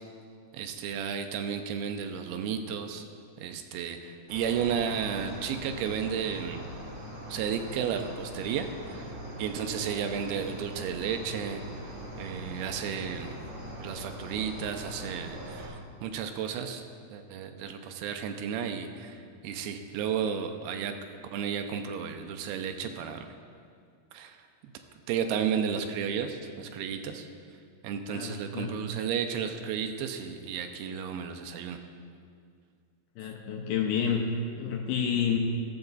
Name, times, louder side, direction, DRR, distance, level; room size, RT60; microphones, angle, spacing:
voice 1, 0.5-3.1 3.4-6.6 7.3-9.1 9.4-11.6 12.2-13.4 13.8-16.8 17.1-21.0 21.3-23.3 24.1-24.4 25.1-27.3 27.8-31.8, right 7 dB, 80° right, 6 dB, 2.3 m, -33 dB
Cricket, 4.3-15.7, right 1 dB, 40° right, 1.7 m, -42 dB
voice 2, 28.1-28.8 33.2-34.3 34.6-35.4, left 7 dB, 80° left, 2 dB, 2.2 m, -29 dB
14.5 x 7.0 x 3.9 m, 2.2 s
omnidirectional pair, 4.7 m